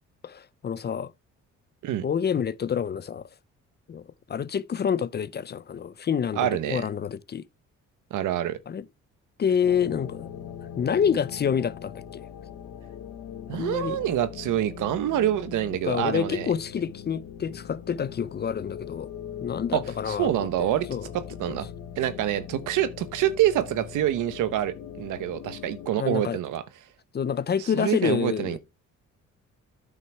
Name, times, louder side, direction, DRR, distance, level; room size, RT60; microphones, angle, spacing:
voice 1, 0.2-1.1 2.0-3.2 3.9-4.0 4.3-7.4 8.7-8.8 9.4-10.3 10.8-12.2 13.5-14.0 15.8-19.1 19.4-20.5 20.9-21.1 21.5-21.6 26.0-26.4 27.1-28.6, left 7 dB, 35° left, 0.5 m, -27 dB
voice 2, 6.4-6.9 8.1-8.6 13.5-16.5 19.7-20.9 21.1-21.7 22.0-26.6 27.6-28.6, right 12 dB, 80° right, 1.0 m, -26 dB
sound 1, 9.6-25.9, left 9 dB, 85° left, 1.3 m, -41 dB
9.4 x 5.6 x 3.4 m
cardioid pair, 90°, 30 cm